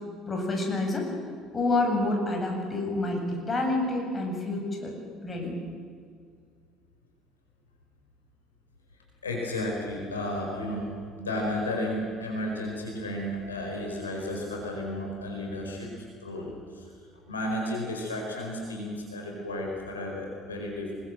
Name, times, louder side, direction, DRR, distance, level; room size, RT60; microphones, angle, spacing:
voice 1, 0.3-1.1 1.5-4.9 5.2-5.6, left 2 dB, 25° left, 2 dB, 8.0 m, -28 dB
voice 2, 9.2-15.9 16.2-16.9 17.3-20.9, left 1 dB, 85° left, 0 dB, 4.7 m, -33 dB
27.5 x 21.0 x 7.8 m, 2.1 s
figure-of-eight pair, 60°, 0 cm